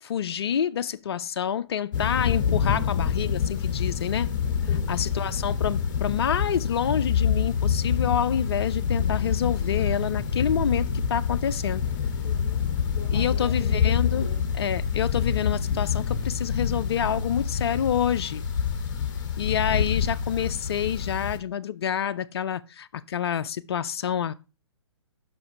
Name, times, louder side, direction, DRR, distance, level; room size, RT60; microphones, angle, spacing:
voice 1, 0.0-4.3 4.9-11.8 13.1-14.3 14.6-18.4 19.4-24.3, left 8 dB, 60° left, 0.4 m, -27 dB
sound 1, 1.9-21.4, left 7 dB, 40° left, 1.1 m, -26 dB
voice 2, 4.7-5.0 12.2-12.6 12.9-14.4, left 3 dB, 10° left, 2.9 m, -42 dB
5.9 x 4.9 x 4.7 m
figure-of-eight pair, 130°, 15 cm